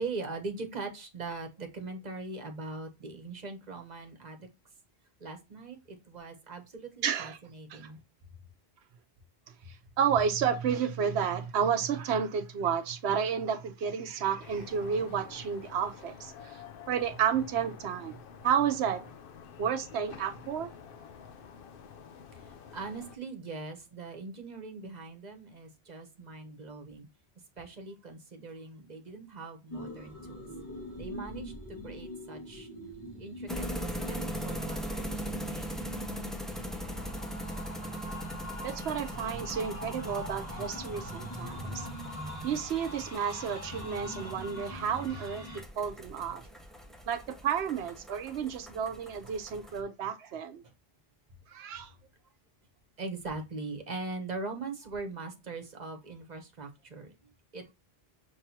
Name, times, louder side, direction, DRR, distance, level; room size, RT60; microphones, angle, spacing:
voice 1, 0.0-4.5 5.2-8.0 22.3-27.1 27.6-30.5 31.0-32.7 33.1-35.8 48.4-48.5 49.6-49.7 50.6-50.7 51.5-51.8 53.0-57.7, right 3 dB, 45° right, 1.1 m, -41 dB
voice 2, 7.0-7.4 7.7-7.9 9.7-19.1 19.6-20.7 38.6-41.9 42.4-46.5 47.1-50.6 51.5-51.9, right 7 dB, 85° right, 1.0 m, -31 dB
sound 1, 14.4-23.2, left 7 dB, 65° left, 0.8 m, -49 dB
sound 2, 29.7-45.6, left 1 dB, 30° left, 1.9 m, -43 dB
sound 3, 33.5-49.8, equal, ahead, 0.6 m, -40 dB
5.9 x 3.2 x 2.7 m
omnidirectional pair, 1.1 m